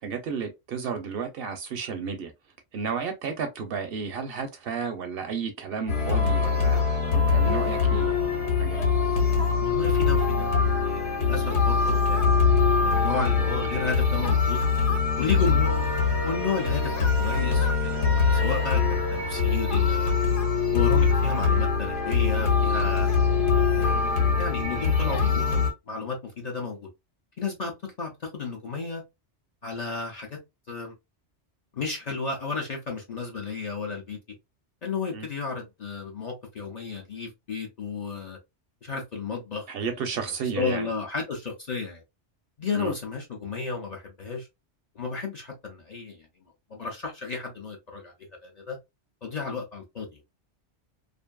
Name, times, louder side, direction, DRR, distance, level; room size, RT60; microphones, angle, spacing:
voice 1, 0.0-2.3 2.7-6.8 7.1-8.3 8.6-8.9 35.1-35.3 39.7-40.9 42.7-42.9, right 6 dB, 65° right, 0.7 m, -32 dB
sound 1, 5.9-25.7, left 5 dB, 75° left, 1.2 m, -23 dB
voice 2, 9.6-10.5 10.8-14.6 15.2-15.7 16.2-16.9 17.2-20.1 20.7-23.1 23.7-24.0 24.4-26.9 27.4-27.7 28.0-29.0 29.6-30.4 30.7-30.9 31.7-34.2 34.8-38.4 38.8-39.9 40.2-42.0 42.6-44.5 44.9-46.2 46.7-48.1 48.4-48.8 49.2-50.2, left 5 dB, 45° left, 0.6 m, -33 dB
2.6 x 2.5 x 2.2 m
omnidirectional pair, 1.2 m